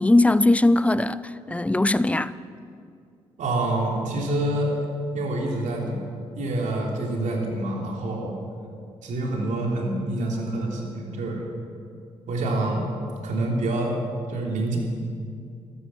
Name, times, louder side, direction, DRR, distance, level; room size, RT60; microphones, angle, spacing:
voice 1, 0.0-2.3, left 2 dB, 10° left, 0.6 m, -20 dB
voice 2, 3.4-4.7 5.1-6.1 6.3-8.4 9.0-11.4 12.3-12.9 13.2-14.0 14.3-14.8, right 2 dB, 65° right, 3.1 m, -27 dB
13.0 x 13.0 x 7.3 m
hypercardioid pair, 45°, 14 cm